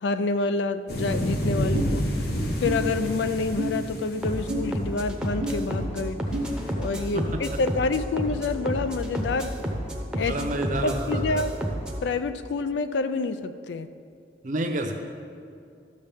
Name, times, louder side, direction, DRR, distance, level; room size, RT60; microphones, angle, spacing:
voice 1, 0.0-2.1 2.6-6.2 6.8-9.6 10.1-10.5 10.8-11.5 12.0-13.9, left 3 dB, 80° left, 12 dB, 0.4 m, -28 dB
sound 1, 0.9-4.6 6.5-6.7, equal, 60° left, 1.0 m, -29 dB
sound 2, 1.7-1.9 2.6-2.8 3.6-3.7 4.5-4.6 5.4-5.5 6.3-6.5, right 2 dB, 45° left, 2.0 m, -29 dB
sound 3, 4.2-12.0, equal, 5° right, 0.8 m, -31 dB
voice 2, 10.3-11.4 14.4-14.9, right 1 dB, 45° right, 4 dB, 0.7 m, -29 dB
12.5 x 6.4 x 3.5 m, 2.4 s
head